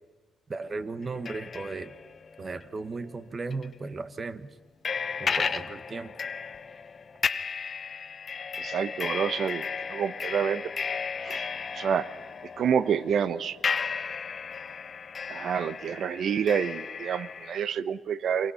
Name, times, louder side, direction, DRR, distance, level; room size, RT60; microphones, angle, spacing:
voice 1, 0.5-2.0 2.4-4.5 5.2-6.1, right 3 dB, 35° right, 12 dB, 1.4 m, -36 dB
sound 1, 1.0-3.1 3.5-3.7 4.8-17.6, left 5 dB, 40° left, 1.0 m, -34 dB
voice 2, 8.6-9.6 9.9-10.6 11.2-11.5 11.7-12.1 12.6-13.6 15.3-18.5, right 7 dB, 60° right, 14 dB, 1.1 m, -28 dB
28.5 x 24.5 x 5.8 m, 1.3 s
cardioid pair, 90°, 0 cm